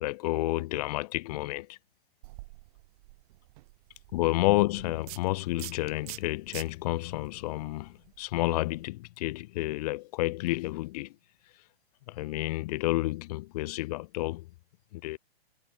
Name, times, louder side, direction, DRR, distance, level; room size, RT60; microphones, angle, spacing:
voice 1, 0.0-1.8 4.1-11.1 12.1-14.5 14.9-15.2, left 19 dB, 40° left, 1.3 m, -30 dB
sound 1, 2.2-8.8, right 22 dB, 35° right, 2.3 m, -48 dB
hypercardioid pair, 135°, 31 cm